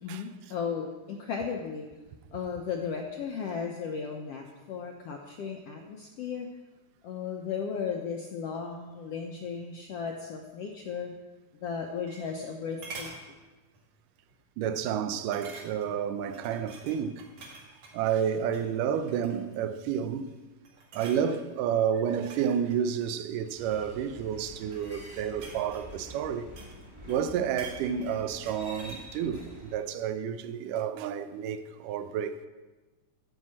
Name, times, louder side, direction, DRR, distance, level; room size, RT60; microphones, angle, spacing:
voice 1, 0.0-1.9 2.3-6.5 7.0-11.1 11.6-13.1, left 6 dB, 75° left, 1.4 m, -35 dB
sound 1, 11.7-12.5 12.8-13.2 13.7-14.0 14.3-14.4 15.3-16.0 16.3-18.0 18.4-18.7 19.1-19.6 20.1-20.4 20.6-21.2 22.0-23.6 24.4-26.8 27.1-29.1 29.4-29.5, right 3 dB, 60° right, 3.2 m, -47 dB
voice 2, 14.6-17.2 17.9-20.4 20.9-26.5 27.1-32.5, right 8 dB, 85° right, 2.2 m, -30 dB
sound 2, 23.5-29.8, equal, 35° right, 0.4 m, -47 dB
12.0 x 5.6 x 7.5 m
omnidirectional pair, 3.7 m